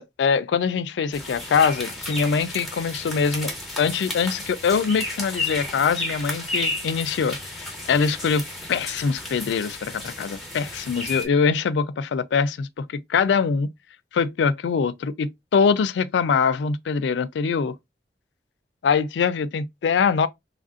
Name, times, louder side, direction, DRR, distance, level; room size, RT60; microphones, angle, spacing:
voice 1, 0.0-3.5 3.8-8.4 8.7-13.7 14.1-17.7 18.8-20.3, left 5 dB, 90° left, 0.3 m, -23 dB
sound 1, 1.1-11.2, left 2 dB, ahead, 0.7 m, -32 dB
3.3 x 2.5 x 2.3 m
head